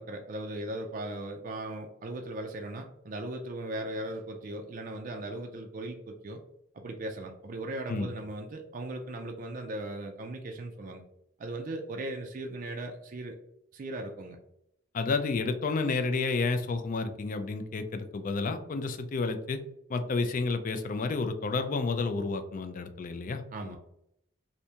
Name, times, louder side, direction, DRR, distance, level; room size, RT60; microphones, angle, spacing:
voice 1, 0.0-6.4 6.7-11.0 11.4-13.4 13.7-14.4 23.5-23.8, right 1 dB, 40° right, 3 dB, 0.4 m, -38 dB
voice 2, 14.9-19.6 19.9-23.8, left 3 dB, 40° left, 8 dB, 0.3 m, -30 dB
3.3 x 2.6 x 2.8 m, 0.77 s
head